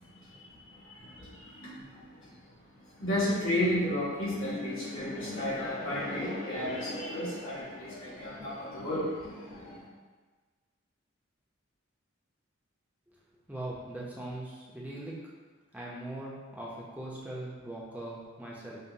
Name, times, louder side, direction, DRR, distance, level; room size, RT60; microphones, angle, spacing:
voice 1, 0.0-2.4 3.0-9.8, left 1 dB, 75° left, -9 dB, 1.4 m, -33 dB
voice 2, 13.5-15.2 15.7-18.8, right 1 dB, 5° right, -6 dB, 0.5 m, -40 dB
5.5 x 2.0 x 2.6 m, 1.4 s
head